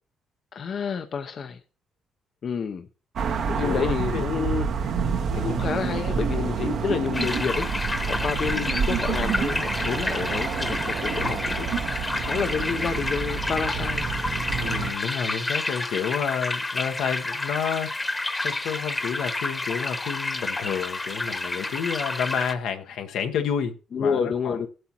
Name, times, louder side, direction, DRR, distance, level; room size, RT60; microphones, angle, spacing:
voice 1, 0.5-1.6 2.4-2.9 3.5-4.7 5.3-7.7 8.1-11.7 12.2-14.1 23.9-24.7, left 6 dB, 55° left, 0.7 m, -29 dB
sound 1, 3.2-14.9, right 6 dB, 65° right, 1.0 m, -29 dB
voice 2, 3.6-4.7 5.3-5.6 8.5-8.7 11.1-11.4 14.6-24.7, left 7 dB, 80° left, 1.1 m, -30 dB
sound 2, 4.9-9.6 10.0-11.8, right 8 dB, 85° right, 1.5 m, -34 dB
sound 3, 7.1-22.5, left 2 dB, 20° left, 1.1 m, -30 dB
17.5 x 7.8 x 2.9 m
cardioid pair, 90°, 0 cm